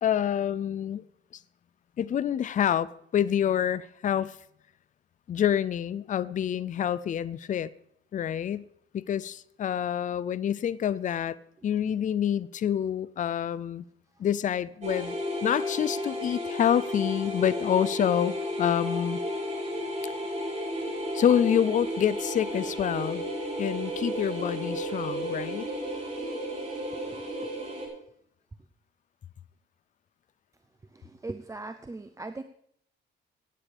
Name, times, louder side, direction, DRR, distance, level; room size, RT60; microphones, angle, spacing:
voice 1, 0.0-1.0 2.0-4.4 5.3-7.7 8.1-8.7 8.9-11.4 11.6-13.8 14.2-15.1 15.4-19.2 21.1-23.2 23.6-25.7, left 9 dB, 40° left, 0.4 m, -27 dB
sound 1, 14.8-27.9, equal, 35° right, 4.9 m, -33 dB
voice 2, 30.9-32.4, right 2 dB, 15° right, 0.5 m, -39 dB
18.0 x 8.9 x 3.4 m
cardioid pair, 90°, 20 cm